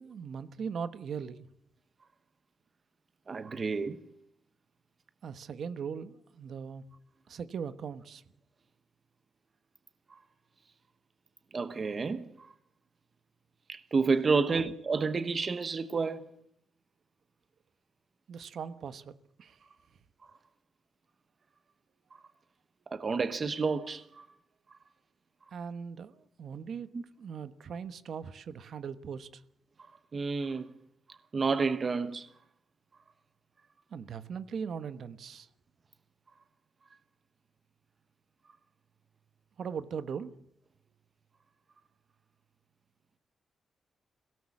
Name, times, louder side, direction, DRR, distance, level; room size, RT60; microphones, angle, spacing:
voice 1, 0.0-1.5 5.2-6.8 7.3-8.2 14.5-14.6 18.3-19.6 25.5-26.9 27.2-29.4 33.9-35.5 39.6-40.3, right 6 dB, 55° right, 1.2 m, -39 dB
voice 2, 3.3-4.0 11.5-12.5 13.7-16.2 22.9-24.3 26.9-27.0 30.1-30.7 31.3-32.3, right 4 dB, 30° right, 0.9 m, -30 dB
22.5 x 17.5 x 7.2 m
wide cardioid pair, 160°, 0 cm